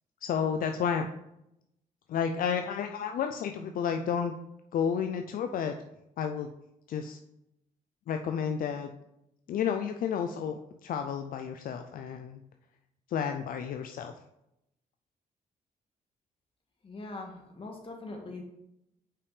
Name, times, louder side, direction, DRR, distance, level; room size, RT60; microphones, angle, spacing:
voice 1, 0.2-1.1 2.1-4.3 4.7-5.8 6.2-6.5 6.9-7.2 8.1-8.9 9.5-12.4 13.1-14.1, left 7 dB, 70° left, 6 dB, 0.5 m, -31 dB
voice 2, 16.8-18.4, left 2 dB, 35° left, 1 dB, 1.7 m, -42 dB
5.7 x 5.2 x 4.8 m, 0.83 s
cardioid pair, 105°, 15 cm